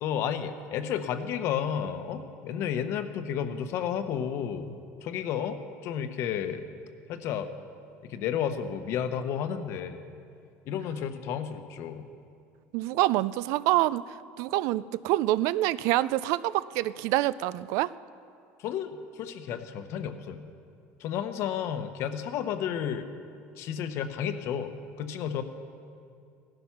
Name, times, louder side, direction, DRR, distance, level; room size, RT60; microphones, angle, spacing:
voice 1, 0.0-4.7 5.0-6.6 7.1-7.5 8.0-10.0 10.7-12.1 18.6-20.5 21.0-23.1 23.6-24.7 25.0-25.4, left 8 dB, 55° left, 9 dB, 1.0 m, -32 dB
voice 2, 12.7-14.0 14.4-17.9, right 16 dB, 65° right, 18 dB, 0.4 m, -26 dB
16.5 x 12.5 x 5.9 m, 2.4 s
cardioid pair, 160°, 6 cm